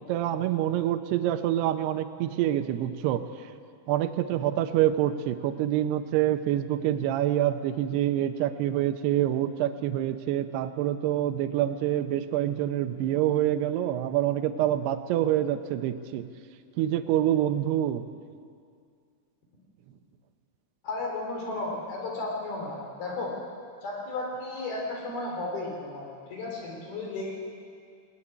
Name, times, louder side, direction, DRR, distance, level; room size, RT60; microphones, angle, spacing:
voice 1, 0.0-3.5 3.9-16.3 16.8-18.1, right 12 dB, 75° right, 7 dB, 2.6 m, -26 dB
voice 2, 20.8-23.3 23.8-27.3, left 2 dB, 60° left, -1 dB, 5.2 m, -34 dB
21.0 x 19.5 x 9.8 m, 2.3 s
omnidirectional pair, 5.2 m